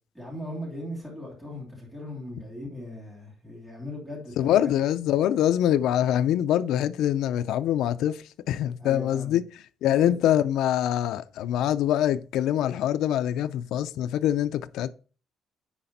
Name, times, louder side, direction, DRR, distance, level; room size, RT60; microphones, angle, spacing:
voice 1, 0.1-4.7 8.8-9.4 10.0-10.1, left 1 dB, 5° right, 3.0 m, -38 dB
voice 2, 4.4-14.9, left 11 dB, 80° left, 0.4 m, -24 dB
9.9 x 4.2 x 4.0 m
cardioid pair, 170°, 0 cm